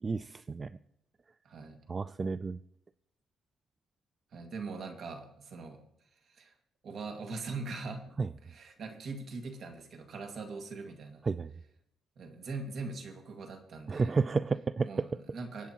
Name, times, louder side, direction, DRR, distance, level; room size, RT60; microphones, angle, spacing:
voice 1, 0.0-0.7 1.9-2.6 8.2-8.3 11.2-11.5 13.9-14.9, right 4 dB, 30° right, 14 dB, 0.3 m, -31 dB
voice 2, 1.4-1.8 4.3-5.8 6.3-6.5 6.8-8.1 8.4-11.2 12.2-14.1 14.8-15.7, right 3 dB, 60° right, 4 dB, 1.9 m, -41 dB
24.5 x 8.3 x 2.9 m, 0.77 s
cardioid pair, 90°, 0 cm